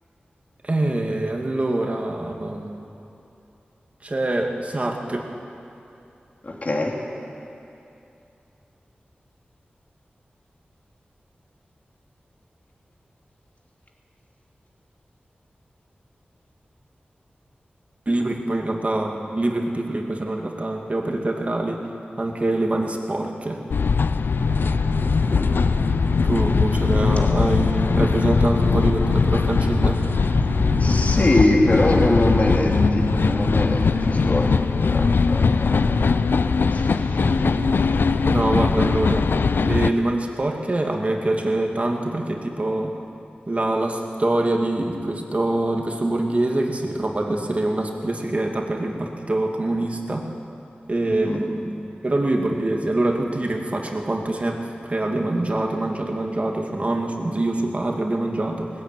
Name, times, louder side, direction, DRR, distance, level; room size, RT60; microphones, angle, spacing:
voice 1, 0.6-2.8 4.0-5.2 18.1-21.8 22.2-23.6 26.2-30.0 37.2-37.7 38.3-39.3 39.6-42.9 43.5-50.2 50.9-51.7 52.0-58.7, right 2 dB, 40° right, 2 dB, 2.4 m, -24 dB
voice 2, 6.4-7.0 25.3-25.6 26.7-26.8 30.5-34.5 34.9-35.7 36.7-37.3 51.0-51.4, left 1 dB, 45° left, 0 dB, 3.0 m, -23 dB
sound 1, 23.7-39.9, left 5 dB, 80° left, 0.5 m, -20 dB
sound 2, 24.3-39.1, right 4 dB, 75° right, 1.0 m, -33 dB
18.5 x 15.0 x 9.2 m, 2.7 s
wide cardioid pair, 65°, 3 cm